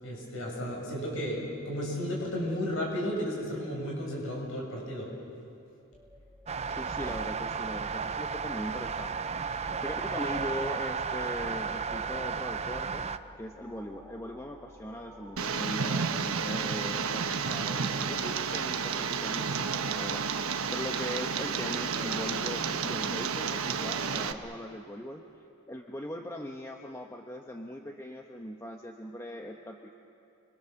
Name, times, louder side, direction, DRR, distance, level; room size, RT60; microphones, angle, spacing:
voice 1, 0.0-5.1, equal, 65° left, -2 dB, 7.8 m, -33 dB
sound 1, 5.9-24.5, right 1 dB, 5° right, 2.3 m, -50 dB
sound 2, 6.5-13.2, right 5 dB, 30° right, 0.5 m, -34 dB
voice 2, 6.7-13.1 13.4-25.2 25.7-29.9, equal, 15° left, 2 dB, 1.0 m, -40 dB
Tick, 15.4-24.3, right 6 dB, 80° right, 1.1 m, -31 dB
29.0 x 23.5 x 7.1 m, 2.7 s
head